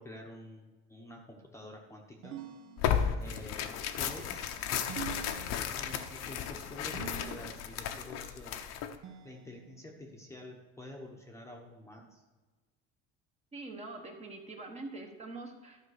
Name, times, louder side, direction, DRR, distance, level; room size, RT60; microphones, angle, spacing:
voice 1, 0.0-2.4 3.2-4.6 5.8-8.6 9.2-12.2, left 1 dB, 10° left, 0 dB, 1.0 m, -48 dB
sound 1, 2.2-3.4 4.9-6.0 6.9-7.8 9.0-10.0, right 9 dB, 65° right, 1.1 m, -46 dB
Tearing, 2.8-9.0, left 8 dB, 60° left, 0.9 m, -34 dB
voice 2, 13.5-15.8, right 2 dB, 20° right, 3 dB, 1.2 m, -44 dB
12.5 x 5.2 x 6.6 m, 1.3 s
cardioid pair, 165°, 30 cm